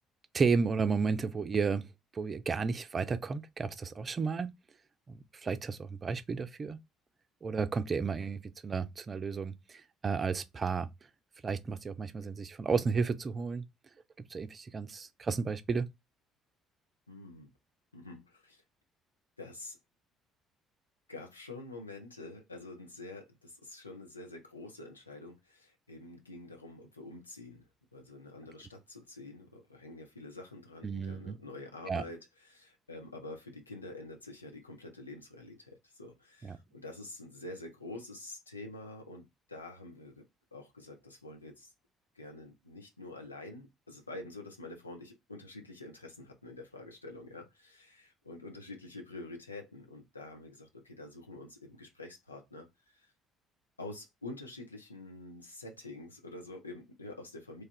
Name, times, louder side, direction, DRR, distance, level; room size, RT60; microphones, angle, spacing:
voice 1, 0.3-1.8 2.1-4.5 5.1-6.8 7.4-10.9 11.4-13.6 14.3-15.9 30.8-31.4 31.9-32.0 36.4-36.6, right 5 dB, 35° right, 0.5 m, -32 dB
voice 2, 17.1-17.5 17.9-18.6 19.4-19.8 21.1-41.7 42.1-53.1 53.8-57.6, left 2 dB, 85° left, 0.7 m, -47 dB
3.2 x 2.4 x 4.4 m
figure-of-eight pair, 50°, 0 cm